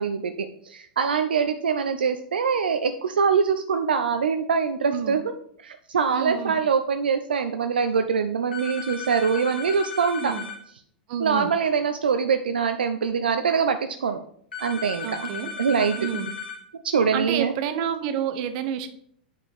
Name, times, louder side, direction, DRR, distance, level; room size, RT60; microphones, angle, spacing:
voice 1, 0.0-5.2 5.6-10.3 11.2-14.2 14.6-15.3 15.6-16.0 16.8-17.5, right 6 dB, 75° right, 8 dB, 0.5 m, -24 dB
voice 2, 6.1-6.5 10.2-10.4 11.1-11.5 15.0-15.5 16.0-16.3 17.1-18.9, right 8 dB, 50° right, 11 dB, 0.8 m, -29 dB
sound 1, 8.5-10.6 14.5-16.6, left 6 dB, 80° left, 1.6 m, -35 dB
8.2 x 5.0 x 3.5 m, 0.67 s
figure-of-eight pair, 100°, 5 cm